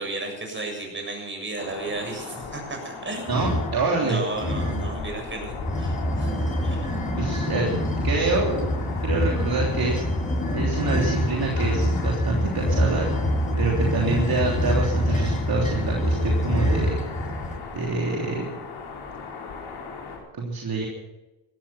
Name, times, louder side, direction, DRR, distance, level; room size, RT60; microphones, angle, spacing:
voice 1, 0.0-3.4 4.0-6.4 6.6-6.9, right 2 dB, 25° right, 2 dB, 7.5 m, -34 dB
sound 1, 1.6-20.2, left 5 dB, 70° left, 5.0 m, -38 dB
sound 2, 3.3-3.8 4.4-5.0 5.6-17.6, equal, 15° left, 7.5 m, -25 dB
voice 2, 3.3-4.2 7.1-7.7 8.0-8.7 9.0-10.0 10.5-13.1 13.6-17.0 17.7-18.6 20.4-20.9, right 3 dB, 45° right, -2 dB, 3.3 m, -26 dB
17.0 x 13.5 x 5.8 m, 1.0 s
cardioid pair, 80°, 49 cm